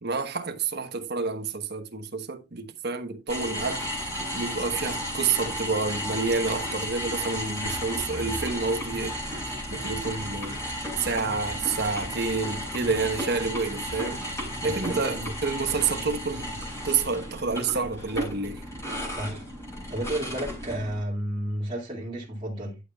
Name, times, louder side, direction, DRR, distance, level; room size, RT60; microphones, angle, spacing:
voice 1, 0.0-3.8 4.3-9.2 9.7-10.6 11.0-14.3 14.6-16.5 16.8-18.6, right 4 dB, 55° right, 1.2 m, -29 dB
sound 1, 3.3-21.0, equal, 15° left, 4.5 m, -33 dB
voice 2, 14.6-15.3 19.1-19.5 19.9-22.8, right 1 dB, 25° right, 2.4 m, -32 dB
11.0 x 6.6 x 2.3 m
head